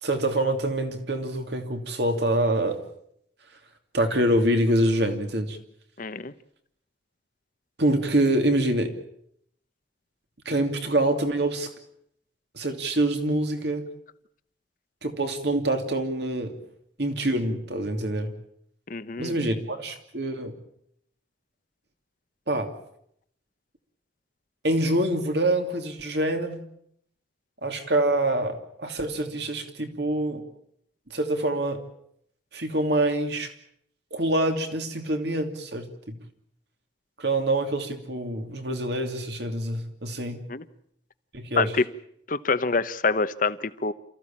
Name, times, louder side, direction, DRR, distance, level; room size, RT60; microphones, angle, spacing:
voice 1, 0.0-2.8 3.9-5.6 7.8-8.9 10.4-11.7 12.5-13.8 15.0-16.5 17.0-18.3 19.2-20.5 22.5-22.7 24.6-26.6 27.6-30.4 31.1-31.8 32.5-33.5 34.1-36.2 37.2-40.4 41.3-41.7, right 1 dB, 60° right, 5 dB, 2.8 m, -25 dB
voice 2, 6.0-6.3 18.9-19.3 40.5-40.6 41.6-41.8 42.3-43.9, left 4 dB, 45° left, 13 dB, 1.0 m, -26 dB
28.5 x 15.0 x 8.8 m, 0.73 s
head